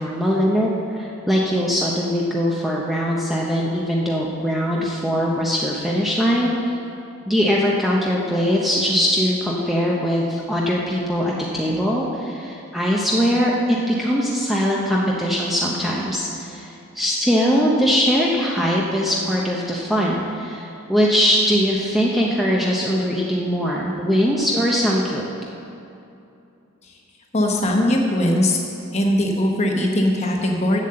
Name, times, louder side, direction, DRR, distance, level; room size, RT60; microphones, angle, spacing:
voice 1, 0.0-6.8 7.3-25.2, equal, ahead, -4 dB, 0.6 m, -21 dB
voice 2, 27.3-28.6 28.9-30.8, left 1 dB, 30° left, 1 dB, 1.0 m, -20 dB
7.5 x 7.3 x 7.6 m, 2.7 s
head